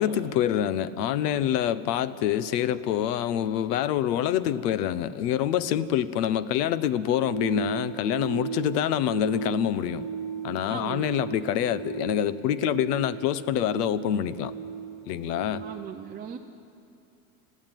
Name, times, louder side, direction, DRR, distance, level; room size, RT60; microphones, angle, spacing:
voice 1, 0.0-10.0 10.4-14.5 15.1-15.6, left 10 dB, 90° left, 16 dB, 1.0 m, -26 dB
sound 1, 7.1-15.8, right 6 dB, ahead, 2.8 m, -36 dB
voice 2, 10.7-11.1 15.6-16.4, right 8 dB, 20° right, 2 dB, 0.6 m, -38 dB
21.0 x 15.5 x 9.2 m, 2.6 s
supercardioid pair, 140°, 46 cm